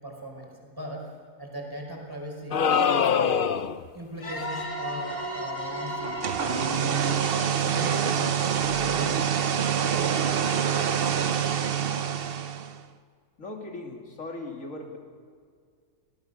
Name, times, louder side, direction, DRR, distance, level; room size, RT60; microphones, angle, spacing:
voice 1, 0.0-1.1 1.4-2.6 3.9-7.1 7.5-8.4 8.8-9.3, equal, 15° right, 1 dB, 5.0 m, -39 dB
sound 1, 2.5-3.9, left 6 dB, 50° left, 0.7 m, -23 dB
sound 2, 4.2-8.8, right 1 dB, 30° left, 2.8 m, -36 dB
sound 3, 6.0-12.8, right 8 dB, 50° right, 0.9 m, -26 dB
voice 2, 13.4-15.0, left 2 dB, 65° left, 2 dB, 3.3 m, -38 dB
25.5 x 17.5 x 6.8 m, 2.1 s
omnidirectional pair, 1.5 m